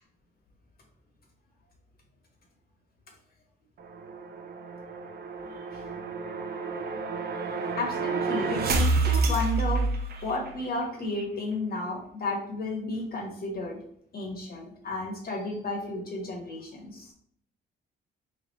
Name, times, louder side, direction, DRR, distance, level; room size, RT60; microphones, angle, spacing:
sound 1, 3.8-10.6, right 3 dB, 55° right, 0.6 m, -29 dB
voice 1, 7.8-9.9 10.1-13.8 14.1-17.1, left 2 dB, 50° left, 1 dB, 1.3 m, -33 dB
3.3 x 2.6 x 4.0 m, 0.64 s
cardioid pair, 90°, 20 cm